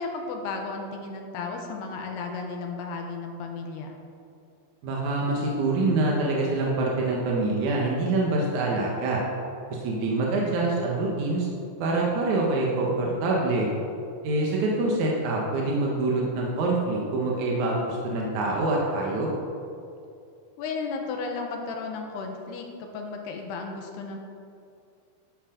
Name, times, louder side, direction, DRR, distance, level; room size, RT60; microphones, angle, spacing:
voice 1, 0.0-4.0 20.6-24.2, left 4 dB, 70° left, 2 dB, 3.0 m, -34 dB
voice 2, 4.8-9.2 9.7-11.5 11.8-13.7 14.2-19.3, right 2 dB, 70° right, -2 dB, 1.9 m, -25 dB
12.0 x 11.0 x 5.2 m, 2.5 s
omnidirectional pair, 5.5 m